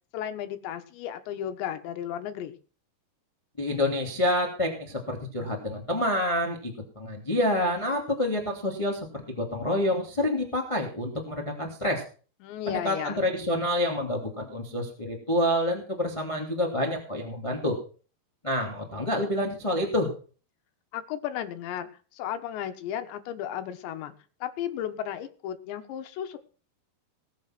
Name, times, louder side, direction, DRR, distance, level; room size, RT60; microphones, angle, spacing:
voice 1, 0.1-2.6 12.4-13.3 20.9-24.1 24.4-26.4, left 10 dB, 85° left, 8 dB, 3.6 m, -34 dB
voice 2, 3.6-9.0 9.4-12.0 12.7-17.8 18.4-20.1, left 1 dB, 10° left, 1 dB, 1.8 m, -28 dB
20.0 x 7.4 x 6.0 m, 0.40 s
omnidirectional pair, 5.0 m